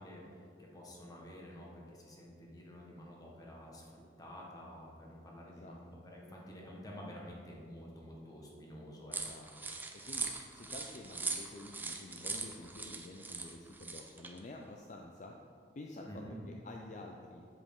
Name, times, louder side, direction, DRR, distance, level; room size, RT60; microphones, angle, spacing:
voice 1, 0.0-9.2 16.0-16.4, equal, 20° left, -2 dB, 1.3 m, -50 dB
voice 2, 5.5-5.8 9.2-9.5 10.1-15.4 15.8-16.1 16.5-17.5, left 2 dB, 45° left, 1 dB, 0.5 m, -49 dB
sound 1, 9.1-14.4, right 3 dB, 10° right, 0.5 m, -41 dB
8.0 x 7.6 x 3.7 m, 2.3 s
head